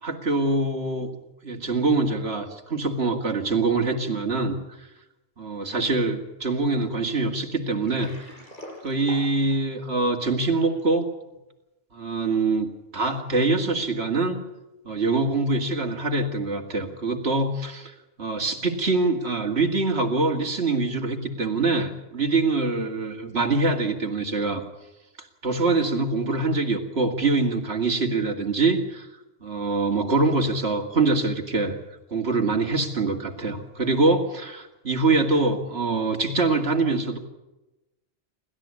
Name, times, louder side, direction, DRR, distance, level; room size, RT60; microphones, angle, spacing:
voice 1, 0.0-1.2 1.4-4.6 5.4-8.3 8.8-11.1 11.9-14.4 14.9-24.6 25.2-29.1 29.4-31.8 32.1-37.2, right 3 dB, 60° right, 4 dB, 2.5 m, -24 dB
Water, 7.6-10.8, equal, 40° left, 6.4 m, -44 dB
28.5 x 13.0 x 8.6 m, 1.0 s
omnidirectional pair, 1.2 m